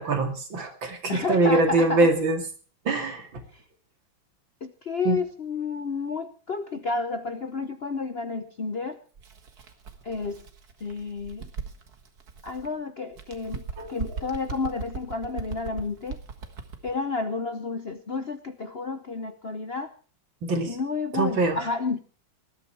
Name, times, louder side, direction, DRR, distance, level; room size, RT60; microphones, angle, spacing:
voice 1, 0.0-2.4 2.9-3.2 5.1-5.2 13.8-14.0 20.4-20.7 21.2-21.6, right 2 dB, 70° right, 5 dB, 3.1 m, -23 dB
voice 2, 1.1-2.1 3.5-3.6 4.6-9.0 10.0-10.4 10.8-11.5 12.4-16.2 16.8-19.9 20.7-22.0, left 4 dB, 45° left, 9 dB, 0.8 m, -31 dB
Bird, 9.1-12.7 13.1-16.9, right 5 dB, 50° right, 2.0 m, -39 dB
20.0 x 12.5 x 4.6 m, 0.39 s
omnidirectional pair, 2.2 m